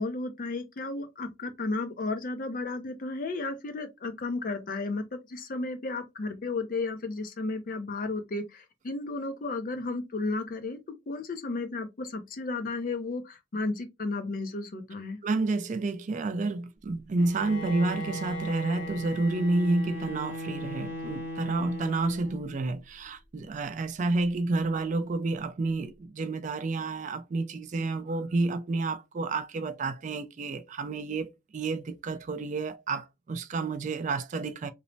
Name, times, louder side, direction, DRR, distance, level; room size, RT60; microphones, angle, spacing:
voice 1, 0.0-10.8 11.1-15.2, left 3 dB, 45° left, 0.5 m, -33 dB
voice 2, 15.2-34.7, right 3 dB, 40° right, 0.3 m, -30 dB
Bowed string instrument, 17.2-22.5, equal, 85° left, 0.9 m, -38 dB
3.1 x 2.0 x 2.6 m
head